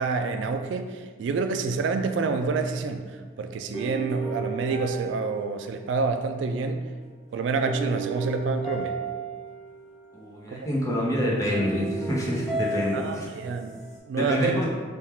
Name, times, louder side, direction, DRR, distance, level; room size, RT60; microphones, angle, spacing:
voice 1, 0.0-3.1 3.4-6.8 7.3-9.0 10.5-10.7 12.9-13.7 14.1-14.6, right 4 dB, 80° right, 7 dB, 0.3 m, -27 dB
sound 1, 3.7-6.3 7.7-10.1 11.5-14.0, right 3 dB, ahead, 1.0 m, -34 dB
voice 2, 10.1-13.3 14.2-14.7, equal, 20° left, -5 dB, 0.8 m, -27 dB
3.6 x 2.3 x 4.3 m, 1.5 s
head